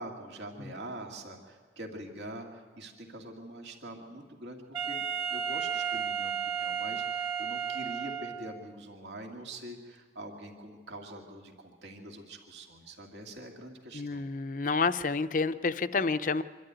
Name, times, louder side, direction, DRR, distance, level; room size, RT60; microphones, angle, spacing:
voice 1, 0.0-14.3, right 1 dB, 75° right, 2 dB, 2.1 m, -44 dB
Wind instrument woodwind instrument, 4.7-8.7, right 7 dB, 25° right, 1.3 m, -33 dB
voice 2, 13.9-16.4, left 4 dB, 45° left, 12 dB, 0.6 m, -29 dB
25.0 x 12.5 x 9.2 m, 1.4 s
head